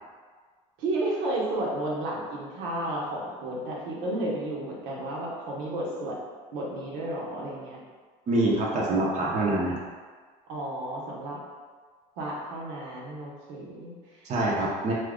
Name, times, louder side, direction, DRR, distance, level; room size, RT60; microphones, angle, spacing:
voice 1, 0.8-6.2 6.5-7.8 10.5-11.4 12.2-14.3, right 1 dB, 75° right, -4 dB, 0.9 m, -32 dB
voice 2, 8.3-9.8 14.2-14.9, right 2 dB, 40° right, -4 dB, 0.7 m, -25 dB
2.9 x 2.4 x 3.5 m, 1.5 s
supercardioid pair, 100°, 19 cm